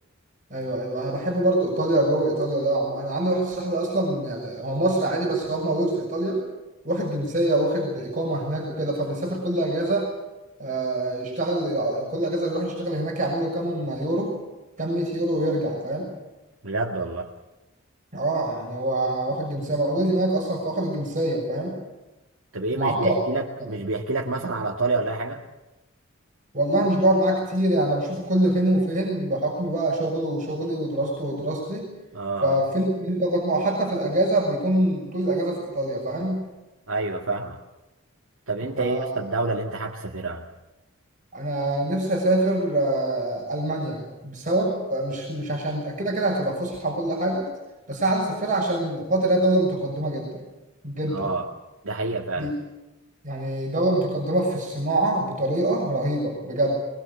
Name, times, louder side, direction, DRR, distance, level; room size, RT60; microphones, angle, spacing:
voice 1, 0.5-6.4 6.8-10.1 10.6-14.3 14.8-16.1 18.1-21.8 22.7-23.2 26.5-31.9 32.4-36.5 38.8-39.1 41.3-47.5 47.9-50.4 50.8-51.3 52.4-52.5 53.2-56.7, right 1 dB, 40° right, -1 dB, 6.3 m, -25 dB
voice 2, 16.6-17.3 22.5-25.4 32.1-32.6 36.9-37.6 38.5-40.5 51.1-51.5 51.8-52.5, right 3 dB, 90° right, -2 dB, 2.0 m, -28 dB
22.5 x 21.5 x 8.3 m, 1.0 s
head